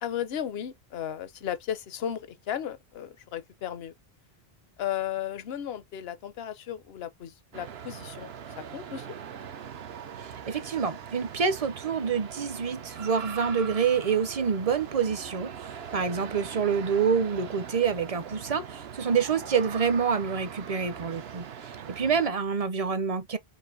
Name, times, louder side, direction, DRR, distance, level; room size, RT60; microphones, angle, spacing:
voice 1, 0.0-3.9 4.8-9.1, left 10 dB, 80° left, 0.9 m, -35 dB
sound 1, 7.5-22.3, right 8 dB, 85° right, 1.0 m, -41 dB
voice 2, 10.2-23.4, right 6 dB, 45° right, 0.6 m, -27 dB
5.3 x 2.5 x 2.5 m
omnidirectional pair, 1.0 m